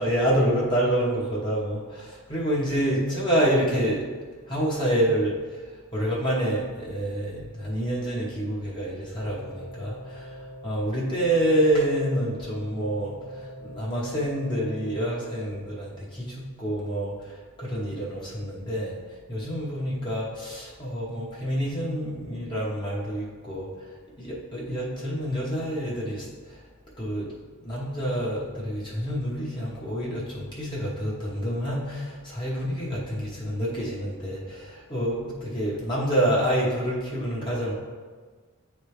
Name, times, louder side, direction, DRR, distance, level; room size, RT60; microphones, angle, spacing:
voice 1, 0.0-4.1 4.5-26.6 27.0-27.3 27.6-37.7, right 1 dB, 20° left, -6 dB, 1.1 m, -27 dB
sound 1, 9.2-15.5, equal, 30° right, 0.7 m, -42 dB
9.5 x 3.3 x 3.2 m, 1.5 s
head